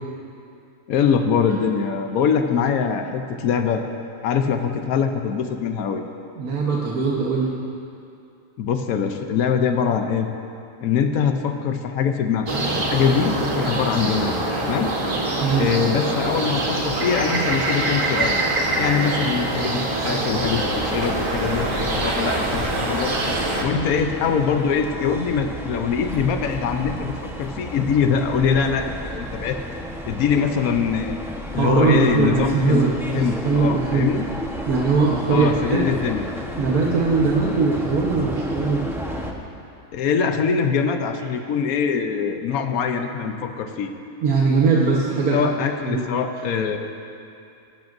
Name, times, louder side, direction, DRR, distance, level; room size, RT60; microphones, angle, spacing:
voice 1, 0.9-3.8 4.2-6.0 8.6-10.3 10.8-12.5 12.9-14.3 14.6-14.9 15.6-18.4 18.7-23.1 23.6-29.6 30.1-31.2 31.5-34.2 35.3-36.3 39.9-43.9 45.3-46.8, left 6 dB, 80° left, 6 dB, 1.2 m, -23 dB
voice 2, 6.4-7.5 15.3-15.7 31.5-34.1 34.7-35.8 36.6-38.9 44.2-45.4 45.9-46.0, right 4 dB, 85° right, -4 dB, 1.6 m, -20 dB
sound 1, 12.5-23.6, right 2 dB, 40° right, 1.4 m, -24 dB
sound 2, 20.3-39.3, equal, ahead, 0.9 m, -32 dB
22.0 x 12.0 x 2.6 m, 2.6 s
omnidirectional pair, 1.5 m